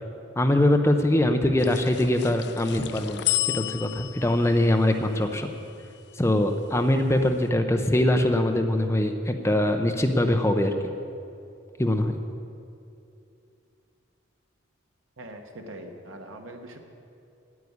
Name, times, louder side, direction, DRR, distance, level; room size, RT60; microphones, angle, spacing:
voice 1, 0.4-5.5 6.2-10.7 11.8-12.2, left 1 dB, 15° left, 5 dB, 0.6 m, -23 dB
sound 1, 1.6-6.1, left 16 dB, 55° left, 0.3 m, -33 dB
voice 2, 15.2-16.8, right 1 dB, 85° right, 4 dB, 1.3 m, -42 dB
9.5 x 8.3 x 9.5 m, 2.6 s
head